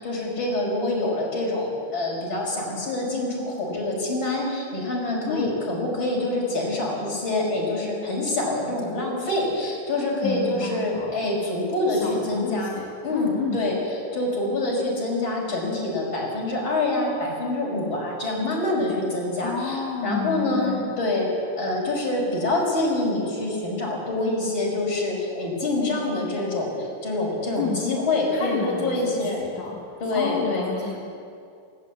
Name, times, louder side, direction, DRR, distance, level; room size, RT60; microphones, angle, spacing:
voice 1, 0.0-12.8 13.0-29.4 30.0-30.7, left 2 dB, 35° left, -2 dB, 6.2 m, -26 dB
voice 2, 10.2-11.1 11.9-12.8 13.1-13.6 19.4-20.9 27.6-27.8 28.3-31.0, left 5 dB, 65° left, -3 dB, 3.4 m, -31 dB
19.5 x 18.0 x 8.4 m, 2.4 s
omnidirectional pair, 3.7 m